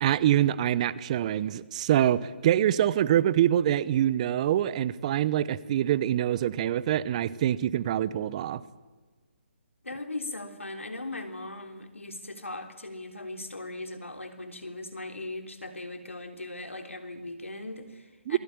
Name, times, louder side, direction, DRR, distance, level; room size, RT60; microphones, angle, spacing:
voice 1, 0.0-8.6 18.3-18.4, right 11 dB, 30° right, 19 dB, 0.8 m, -25 dB
voice 2, 9.8-18.4, left 2 dB, 90° left, 6 dB, 3.3 m, -39 dB
28.0 x 20.5 x 8.9 m, 1.3 s
figure-of-eight pair, 145°, 7 cm